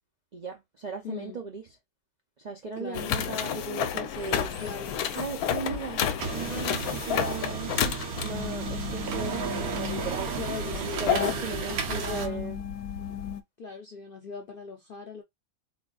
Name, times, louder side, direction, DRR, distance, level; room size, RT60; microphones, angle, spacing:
voice 1, 0.3-1.6 2.4-4.6 5.1-12.6, right 4 dB, 55° right, 0.4 m, -37 dB
voice 2, 1.0-1.4 2.8-3.1 4.6-5.0 10.4-12.5 13.6-15.2, left 5 dB, 60° left, 0.5 m, -40 dB
sound 1, 2.9-13.4, left 9 dB, 80° left, 1.0 m, -31 dB
sound 2, 4.1-12.3, right 6 dB, 80° right, 1.3 m, -35 dB
4.2 x 2.5 x 2.3 m
omnidirectional pair, 1.6 m